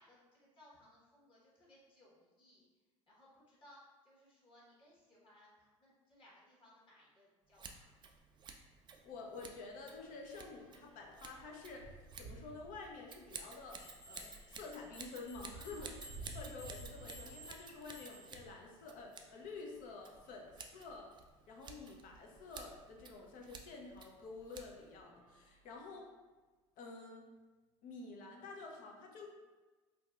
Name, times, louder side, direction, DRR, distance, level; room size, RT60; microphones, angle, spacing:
voice 1, 0.0-2.6 3.1-7.9 16.0-16.3, left 1 dB, 30° left, -6 dB, 1.3 m, -64 dB
Scissors, 7.5-25.0, right 5 dB, 30° right, 0.4 m, -55 dB
sound 1, 8.3-8.4 8.8-8.9 9.2-18.7 19.4-20.7 21.4-21.5 21.8-21.9 23.6-23.7 24.3-24.5 25.0-26.2, right 2 dB, 90° right, 0.6 m, -56 dB
voice 2, 9.0-21.1 21.5-26.1 26.8-27.3 27.8-29.3, left 3 dB, 55° left, 0 dB, 0.6 m, -50 dB
sound 2, 13.8-18.4, equal, 85° left, 1.3 m, -56 dB
3.9 x 2.3 x 2.4 m, 1.3 s
hypercardioid pair, 80°, 16 cm